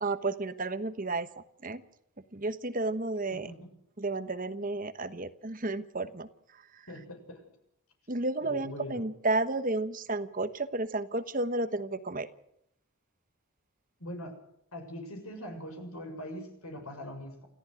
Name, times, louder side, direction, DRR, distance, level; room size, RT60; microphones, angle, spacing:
voice 1, 0.0-1.3 1.6-1.8 2.3-3.5 4.0-6.9 8.1-12.3, right 2 dB, 40° right, 12 dB, 1.1 m, -32 dB
voice 2, 3.3-3.7 6.9-7.4 8.4-9.0 14.0-14.4 14.7-17.5, left 1 dB, 80° left, 5 dB, 6.8 m, -42 dB
28.5 x 14.5 x 6.4 m, 0.75 s
head